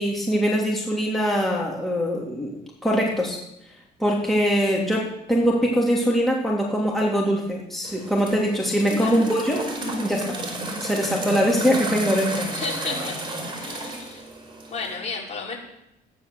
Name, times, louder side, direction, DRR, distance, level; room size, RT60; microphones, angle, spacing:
voice 1, 0.0-2.5 2.8-3.4 4.0-9.6 10.0-10.4 10.8-12.5, equal, ahead, -3 dB, 3.0 m, -22 dB
sound 1, 7.8-15.0, right 2 dB, 30° right, 4.5 m, -32 dB
voice 2, 9.0-9.3 12.5-13.2 13.6-14.2 14.7-15.6, left 4 dB, 40° left, -3 dB, 5.2 m, -32 dB
15.0 x 10.5 x 7.0 m, 0.84 s
cardioid pair, 110°, 17 cm